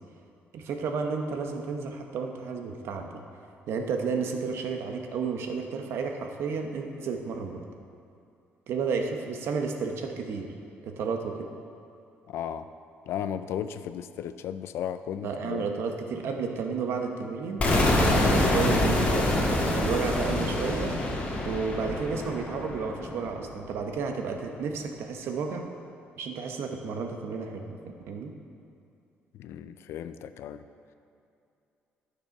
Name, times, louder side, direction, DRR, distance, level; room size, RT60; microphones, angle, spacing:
voice 1, 0.5-3.1 3.7-7.6 8.7-10.5 10.8-11.5 15.2-17.7 18.2-20.9 21.4-25.7 26.2-27.8 28.1-28.3, right 5 dB, 70° right, 4 dB, 1.0 m, -32 dB
voice 2, 12.3-12.6 13.1-15.7 29.4-30.6, left 9 dB, 75° left, 11 dB, 0.4 m, -35 dB
sound 1, 17.6-23.5, left 1 dB, 30° left, 1.9 m, -25 dB
11.5 x 6.8 x 5.3 m, 2.6 s
cardioid pair, 140°, 4 cm